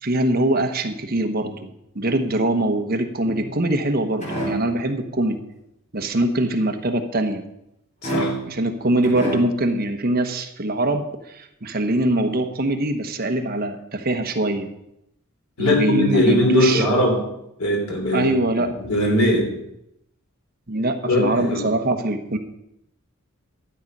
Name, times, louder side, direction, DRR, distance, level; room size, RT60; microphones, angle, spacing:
voice 1, 0.0-5.4 5.9-7.4 8.5-14.7 15.6-16.8 18.1-18.7 20.7-22.4, right 1 dB, 45° right, 6 dB, 1.1 m, -23 dB
sound 1, 3.2-3.8 4.2-4.8 8.0-8.7 9.0-9.7, right 1 dB, 35° left, 4.9 m, -28 dB
voice 2, 8.0-8.4 15.6-17.2 17.6-18.4 18.8-19.5 21.0-21.7, left 1 dB, 85° left, 1 dB, 3.7 m, -20 dB
12.5 x 8.9 x 5.4 m, 0.82 s
head